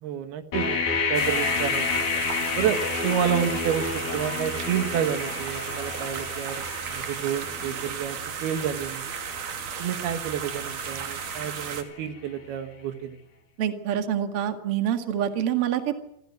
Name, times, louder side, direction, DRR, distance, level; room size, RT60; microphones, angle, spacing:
voice 1, 0.0-2.0 2.5-9.1 9.8-13.2, right 9 dB, 80° right, 8 dB, 3.5 m, -29 dB
sound 1, 0.5-12.3, left 5 dB, 50° left, 3.8 m, -31 dB
sound 2, 1.1-11.8, right 7 dB, 60° right, 3.5 m, -34 dB
voice 2, 13.6-16.0, right 10 dB, 45° right, 6 dB, 2.4 m, -26 dB
27.5 x 16.0 x 9.4 m, 0.78 s
omnidirectional pair, 4.5 m